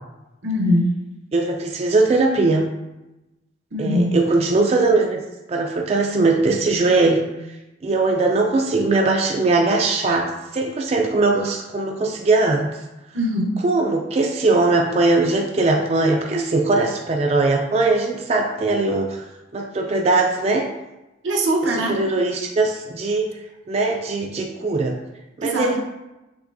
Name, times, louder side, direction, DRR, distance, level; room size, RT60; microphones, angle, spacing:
voice 1, 0.4-0.9 3.7-4.1 13.1-13.5 21.2-21.9 25.4-25.7, equal, 85° right, -1 dB, 0.9 m, -21 dB
voice 2, 1.3-2.6 3.8-5.2 5.5-7.2 7.8-12.7 13.6-19.2 19.5-20.7 21.6-23.3 23.7-25.0 25.4-25.8, right 3 dB, 35° right, 1 dB, 0.3 m, -20 dB
6.1 x 3.3 x 2.6 m, 1.0 s
head